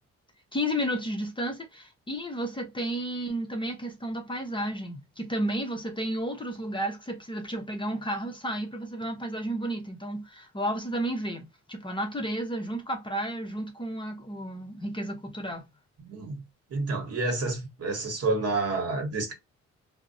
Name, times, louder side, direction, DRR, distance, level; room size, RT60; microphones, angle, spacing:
voice 1, 0.5-15.7, right 1 dB, 15° left, 0.6 m, -32 dB
voice 2, 16.0-16.4 16.7-19.3, right 3 dB, 55° right, 1.0 m, -29 dB
2.5 x 2.0 x 2.4 m
cardioid pair, 90°, 30 cm